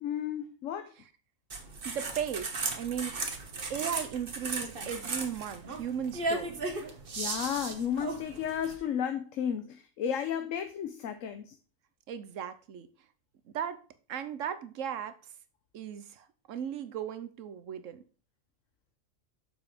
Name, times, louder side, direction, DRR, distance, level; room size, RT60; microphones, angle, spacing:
voice 1, 0.0-0.9 7.1-11.6, left 8 dB, 80° left, 1.1 m, -33 dB
sound 1, 1.5-8.7, right 3 dB, 45° right, 1.3 m, -36 dB
voice 2, 1.8-3.1 3.7-6.6 12.1-12.9 13.5-13.8 14.1-15.1 15.7-18.0, right 8 dB, 75° right, 1.2 m, -36 dB
6.9 x 5.8 x 5.2 m
omnidirectional pair, 1.3 m